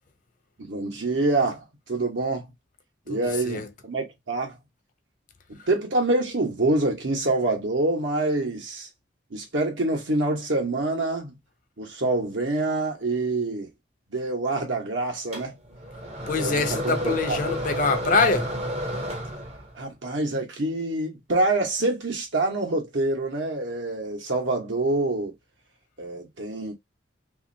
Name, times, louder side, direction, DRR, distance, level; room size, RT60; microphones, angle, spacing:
voice 1, 0.6-2.5 3.1-4.6 5.5-8.9 9.3-11.4 11.8-13.7 14.1-15.5 16.4-17.4 19.7-25.3 26.0-26.7, right 2 dB, 70° right, 1.1 m, -26 dB
voice 2, 3.1-3.7 5.6-5.7 16.3-18.5, left 4 dB, 40° left, 0.5 m, -24 dB
sound 1, 15.3-19.8, equal, 30° right, 0.6 m, -31 dB
3.0 x 2.8 x 2.6 m
head